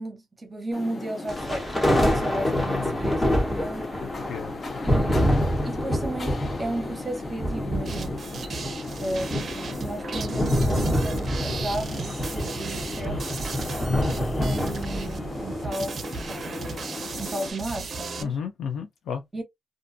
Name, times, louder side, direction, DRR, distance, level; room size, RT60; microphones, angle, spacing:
voice 1, 0.0-3.9 4.8-8.2 9.0-13.3 14.1-18.4 19.3-19.4, right 1 dB, 25° right, 0.9 m, -35 dB
sound 1, 0.7-17.5, left 3 dB, 45° left, 0.6 m, -38 dB
sound 2, 1.3-15.6, equal, 15° left, 1.0 m, -27 dB
voice 2, 2.5-3.0 4.0-4.8 18.2-19.2, left 6 dB, 85° left, 0.4 m, -33 dB
sound 3, 7.9-18.2, right 4 dB, 50° right, 0.5 m, -36 dB
2.5 x 2.1 x 2.6 m
cardioid pair, 100°, 0 cm